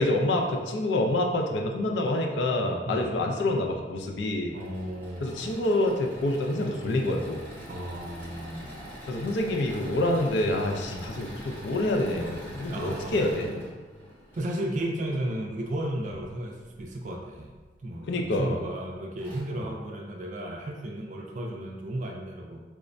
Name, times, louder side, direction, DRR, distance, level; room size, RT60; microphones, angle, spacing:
voice 1, 0.0-4.5 5.2-7.4 9.1-13.7 18.1-18.6, left 1 dB, 80° left, 2 dB, 0.4 m, -27 dB
Engine / Mechanisms, 4.4-14.5 16.1-16.8 17.5-17.6 17.9-18.0 18.8-18.9 19.2-19.4, equal, 10° left, 0.8 m, -44 dB
voice 2, 4.5-5.6 7.7-8.7 9.7-9.8 10.9-11.1 12.7-13.2 14.4-17.5 17.8-22.6, right 1 dB, 45° right, 1 dB, 0.3 m, -34 dB
4.7 x 2.1 x 2.5 m, 1.3 s
head